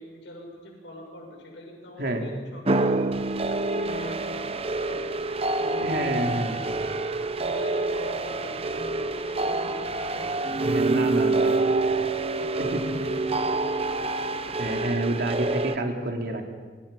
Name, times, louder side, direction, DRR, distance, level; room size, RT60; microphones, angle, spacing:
voice 1, 0.0-3.0 3.5-5.0 5.6-6.6 7.4-11.8 12.4-14.3, left 1 dB, 90° left, 0 dB, 7.3 m, -42 dB
sound 1, 2.6-15.8, right 2 dB, 35° right, 0.9 m, -27 dB
voice 2, 5.8-6.6 10.6-11.5 12.6-12.8 14.6-16.5, right 1 dB, 60° right, 2 dB, 3.3 m, -28 dB
26.5 x 25.5 x 5.6 m, 1.5 s
head